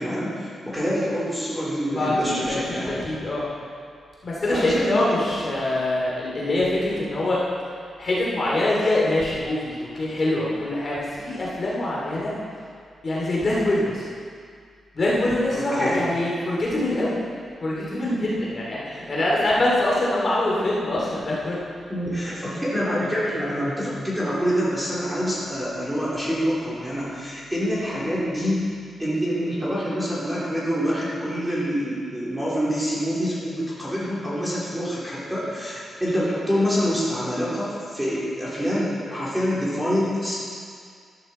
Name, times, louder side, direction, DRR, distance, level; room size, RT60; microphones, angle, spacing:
voice 1, 0.0-3.0 4.5-5.4 15.5-16.0 21.9-28.7 29.0-40.3, equal, 5° right, -8 dB, 3.4 m, -26 dB
voice 2, 1.9-3.4 4.2-7.4 8.0-12.3 13.0-14.0 14.9-17.1 17.6-21.6, left 1 dB, 35° left, -5 dB, 2.7 m, -24 dB
14.5 x 12.5 x 4.4 m, 2.1 s
wide cardioid pair, 165°, 0 cm